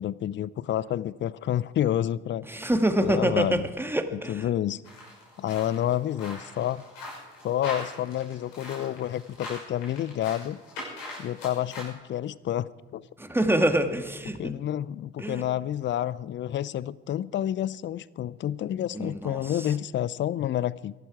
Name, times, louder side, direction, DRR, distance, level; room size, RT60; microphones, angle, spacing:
voice 1, 0.0-2.7 3.0-3.6 4.1-4.8 5.4-6.8 7.4-10.6 11.2-13.0 14.4-20.9, left 11 dB, 40° left, 21 dB, 0.5 m, -29 dB
voice 2, 2.5-4.5 13.2-14.5 15.2-15.4 18.9-19.7, right 1 dB, 5° right, 7 dB, 1.7 m, -26 dB
sound 1, 4.8-11.8, left 2 dB, 70° left, 5.9 m, -42 dB
23.5 x 11.5 x 4.8 m, 1.3 s
figure-of-eight pair, 45°, 31 cm